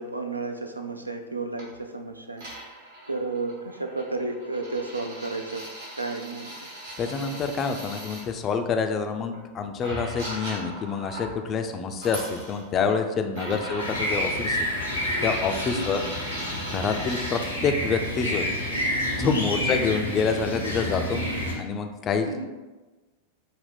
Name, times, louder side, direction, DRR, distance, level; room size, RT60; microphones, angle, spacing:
voice 1, 0.0-2.5 3.1-5.6 6.0-6.5 15.7-16.0 19.6-19.8 22.2-22.4, right 3 dB, 85° right, 5 dB, 0.3 m, -32 dB
sound 1, 1.6-1.7 2.4-8.2 9.3-9.4 9.8-11.3 11.9-13.0 13.4-17.3, right 1 dB, 60° right, 1.1 m, -38 dB
voice 2, 7.0-14.7 14.9-16.0 16.7-18.5 19.2-22.4, left 5 dB, 30° left, 6 dB, 0.3 m, -27 dB
sound 2, 13.8-21.5, left 1 dB, 80° left, 0.7 m, -29 dB
3.4 x 2.1 x 4.1 m, 1.2 s
figure-of-eight pair, 90°, 0 cm